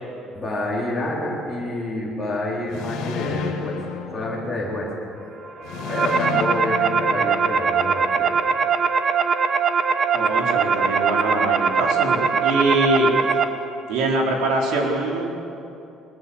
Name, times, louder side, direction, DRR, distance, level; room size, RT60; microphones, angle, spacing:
voice 1, 0.3-3.8 4.1-4.9 5.9-8.5, left 1 dB, 10° left, -7 dB, 3.7 m, -28 dB
sound 1, 2.7-4.9 5.6-7.8, left 6 dB, 90° left, 2.7 m, -32 dB
sound 2, 5.6-13.4, right 5 dB, 30° right, 0.9 m, -21 dB
voice 2, 10.1-13.1 13.9-15.3, right 2 dB, 75° right, -1 dB, 4.2 m, -23 dB
21.0 x 20.5 x 7.1 m, 2.8 s
cardioid pair, 175°, 0 cm